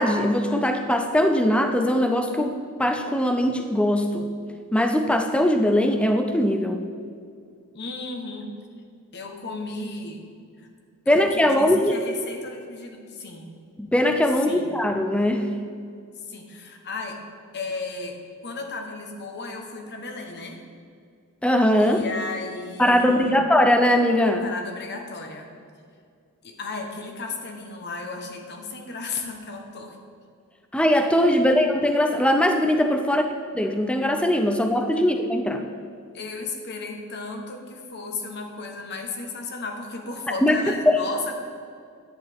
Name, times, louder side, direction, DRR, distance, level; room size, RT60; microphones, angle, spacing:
voice 1, 0.0-4.3 4.7-6.8 11.1-12.0 13.8-15.5 21.4-22.0 22.8-24.5 30.7-33.3 33.5-35.6 40.4-41.0, left 1 dB, 5° left, 5 dB, 0.4 m, -21 dB
voice 2, 7.7-8.5 9.1-10.2 10.6-10.7 11.1-13.5 14.5-14.7 16.3-17.2 17.5-20.6 21.8-23.4 24.4-25.5 26.4-30.0 34.9-35.1 36.1-41.3, left 3 dB, 50° left, 3 dB, 1.0 m, -35 dB
10.0 x 8.1 x 3.5 m, 2.3 s
head